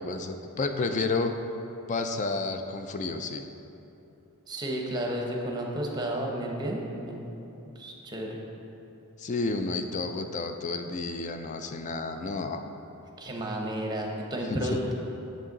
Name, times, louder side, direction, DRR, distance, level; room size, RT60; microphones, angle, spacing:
voice 1, 0.1-1.3 1.9-3.5 9.2-12.6 14.5-14.8, left 3 dB, 35° left, 7 dB, 0.3 m, -31 dB
voice 2, 4.5-7.3 7.8-8.4 13.2-14.9, right 1 dB, 20° right, 0 dB, 0.8 m, -32 dB
6.6 x 6.2 x 3.9 m, 2.9 s
head